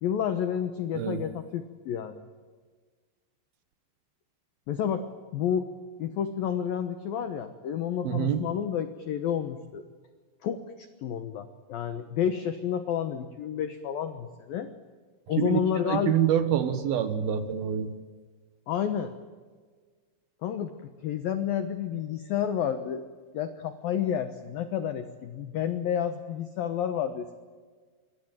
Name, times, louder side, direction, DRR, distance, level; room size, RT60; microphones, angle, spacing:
voice 1, 0.0-2.2 4.7-5.1 5.3-5.7 6.0-9.9 10.4-14.7 15.3-16.2 18.7-19.1 20.4-23.0 23.3-27.4, left 9 dB, 80° left, 9 dB, 2.1 m, -30 dB
voice 2, 8.0-8.5 15.4-15.6 15.9-17.9, right 9 dB, 65° right, 10 dB, 2.5 m, -26 dB
26.5 x 24.5 x 9.1 m, 1.5 s
omnidirectional pair, 6.0 m